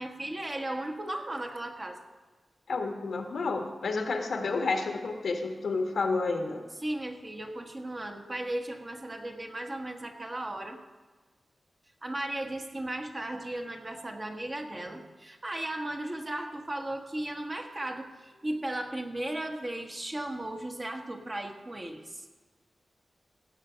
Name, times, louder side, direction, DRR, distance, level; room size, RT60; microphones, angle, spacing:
voice 1, 0.0-2.0 6.8-10.8 12.0-22.3, right 1 dB, 30° right, 3 dB, 1.3 m, -36 dB
voice 2, 2.7-6.6, left 3 dB, 85° left, 4 dB, 1.3 m, -30 dB
16.5 x 6.5 x 5.1 m, 1.3 s
wide cardioid pair, 95°, 0 cm